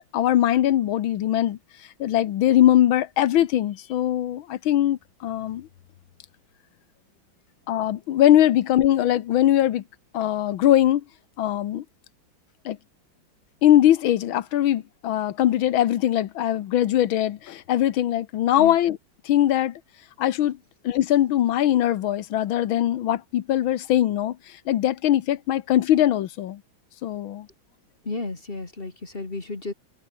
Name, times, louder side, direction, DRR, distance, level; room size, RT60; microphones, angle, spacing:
voice 1, 0.1-1.6 2.0-5.7 7.7-9.8 10.1-11.0 11.4-11.8 12.6-12.8 13.6-19.0 19.2-19.8 20.2-20.6 20.8-26.6 27.0-27.5, left 12 dB, 85° left, 1.8 m, -21 dB
voice 2, 28.0-29.7, left 3 dB, 30° left, 2.3 m, -32 dB
omnidirectional pair, 2.2 m